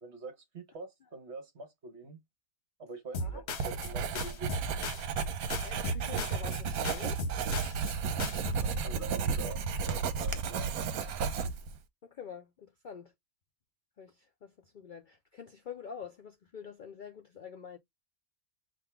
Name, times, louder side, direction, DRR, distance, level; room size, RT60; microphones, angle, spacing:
voice 1, 0.0-2.2 2.8-4.5 8.6-10.7, right 3 dB, 50° right, 1.3 m, -45 dB
sound 1, 3.1-5.3 5.5-6.6 6.8-7.9 8.2-8.6, left 2 dB, 50° left, 1.1 m, -37 dB
Writing, 3.6-11.8, right 5 dB, 75° right, 1.2 m, -33 dB
voice 2, 5.3-7.2 12.0-13.1 14.0-17.8, left 7 dB, 85° left, 0.4 m, -46 dB
3.7 x 2.6 x 4.5 m
omnidirectional pair, 1.6 m